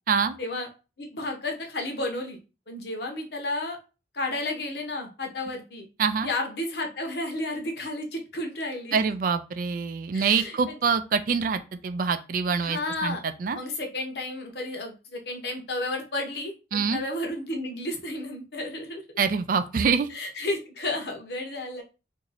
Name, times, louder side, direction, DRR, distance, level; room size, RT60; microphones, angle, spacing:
voice 1, 0.4-0.7 1.0-2.4 2.7-3.8 4.1-5.8 6.2-9.0 10.1-10.8 12.6-13.2 13.5-19.0 20.1-21.8, left 2 dB, 65° left, 3 dB, 0.9 m, -32 dB
voice 2, 6.0-6.3 8.9-13.6 16.7-17.0 19.2-20.1, right 5 dB, 50° right, 10 dB, 0.3 m, -25 dB
2.9 x 2.7 x 4.0 m, 0.32 s
head